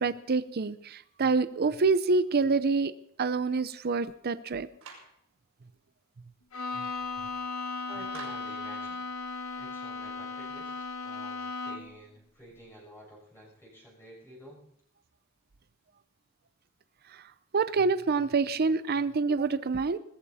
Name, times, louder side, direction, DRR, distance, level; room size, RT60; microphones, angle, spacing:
voice 1, 0.0-2.9 3.2-4.7 17.5-20.0, right 4 dB, 45° right, 14 dB, 0.6 m, -26 dB
Clapping, 4.8-5.2 8.1-8.6, right 5 dB, 90° right, 5.6 m, -46 dB
Bowed string instrument, 6.5-12.0, left 3 dB, 85° left, 1.6 m, -36 dB
voice 2, 7.9-9.0 9.6-10.7 11.0-14.7, equal, 10° left, -4 dB, 6.4 m, -50 dB
20.0 x 14.5 x 4.2 m, 0.68 s
head